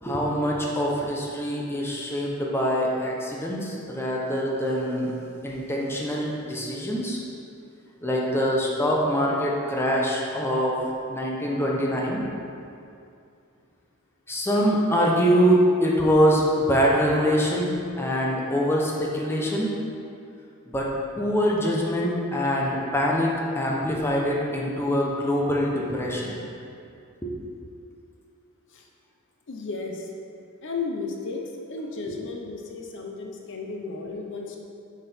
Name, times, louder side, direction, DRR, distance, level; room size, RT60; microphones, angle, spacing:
voice 1, 0.0-5.1 5.4-7.2 8.0-10.8 11.1-12.3 14.3-19.7 20.7-23.3 23.5-26.4 27.2-27.3, equal, 10° left, -3 dB, 0.8 m, -24 dB
voice 2, 29.5-30.1 30.6-31.4 31.7-34.6, left 4 dB, 55° left, 1 dB, 0.7 m, -34 dB
6.7 x 6.2 x 4.3 m, 2.5 s
head